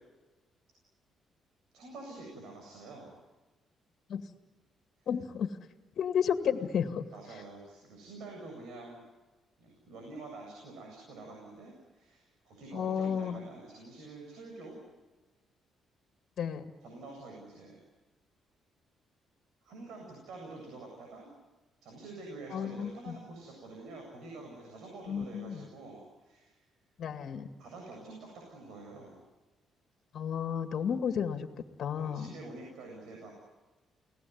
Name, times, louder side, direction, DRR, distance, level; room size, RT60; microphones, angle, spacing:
voice 1, 1.7-3.2 7.1-9.0 9.6-14.8 16.8-17.8 19.6-21.3 21.8-26.6 27.6-29.2 31.9-33.3, right 2 dB, 80° right, 1 dB, 7.9 m, -47 dB
voice 2, 5.1-5.5 6.0-7.1 12.7-13.4 16.4-16.6 22.5-23.2 25.1-25.7 27.0-27.5 30.1-31.5 31.8-32.3, left 7 dB, 65° left, 7 dB, 2.2 m, -32 dB
29.5 x 19.5 x 9.6 m, 1.2 s
cardioid pair, 90°, 0 cm